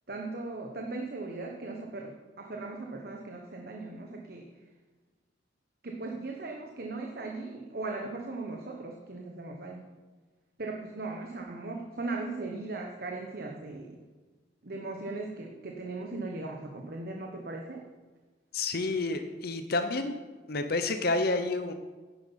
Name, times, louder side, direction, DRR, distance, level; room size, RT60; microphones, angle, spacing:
voice 1, 0.1-4.5 5.8-9.8 10.6-14.0 14.6-17.8, right 3 dB, 55° right, 2 dB, 1.1 m, -38 dB
voice 2, 18.5-20.2 20.5-21.7, left 3 dB, 55° left, 8 dB, 0.8 m, -29 dB
11.0 x 10.0 x 5.7 m, 1.3 s
head